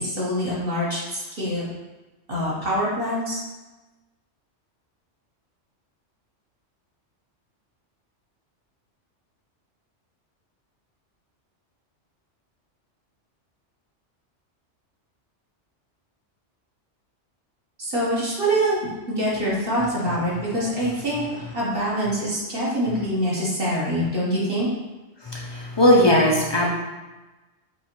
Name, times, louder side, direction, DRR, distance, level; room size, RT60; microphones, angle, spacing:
voice 1, 0.0-1.6 2.3-3.4 17.8-18.8 19.1-24.7, equal, 55° right, -7 dB, 1.2 m, -25 dB
voice 2, 25.2-26.7, left 1 dB, 45° left, -3 dB, 0.3 m, -18 dB
6.1 x 2.7 x 2.9 m, 1.1 s
omnidirectional pair, 1.2 m